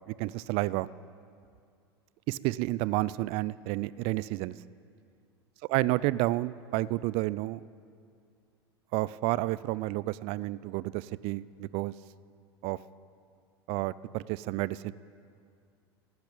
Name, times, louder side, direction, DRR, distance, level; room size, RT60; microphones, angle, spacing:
voice 1, 0.1-0.9 2.3-4.6 5.7-7.6 8.9-11.9 12.6-12.8 13.7-14.9, right 18 dB, 50° right, 20 dB, 0.4 m, -30 dB
14.0 x 12.0 x 8.6 m, 2.3 s
hypercardioid pair, 80°, 13 cm